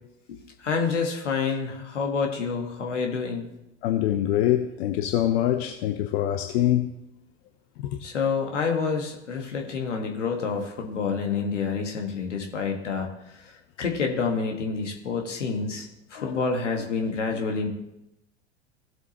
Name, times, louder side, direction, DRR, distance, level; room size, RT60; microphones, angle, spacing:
voice 1, 0.6-3.5 8.0-13.1 13.8-17.7, left 5 dB, 90° left, 1.7 m, -28 dB
voice 2, 3.8-6.9, left 12 dB, 60° left, 0.8 m, -24 dB
16.0 x 7.8 x 3.0 m
hypercardioid pair, 95°, 35 cm